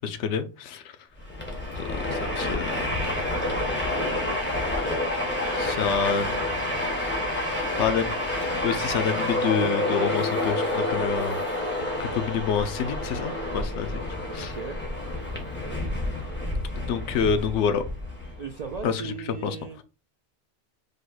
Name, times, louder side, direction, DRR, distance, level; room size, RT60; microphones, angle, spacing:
voice 1, 0.0-0.8 2.0-3.0 5.6-6.4 7.8-8.2 8.6-11.4 12.0-14.0 14.3-14.5 16.8-17.8 18.8-19.1 19.4-19.6, left 6 dB, 85° left, 0.9 m, -27 dB
Train, 1.2-18.8, left 1 dB, 10° left, 1.1 m, -29 dB
voice 2, 3.3-4.4 4.8-5.0 14.3-14.8 15.6-15.8 18.4-19.8, right 5 dB, 60° right, 0.4 m, -38 dB
5.1 x 2.1 x 3.9 m
omnidirectional pair, 1.2 m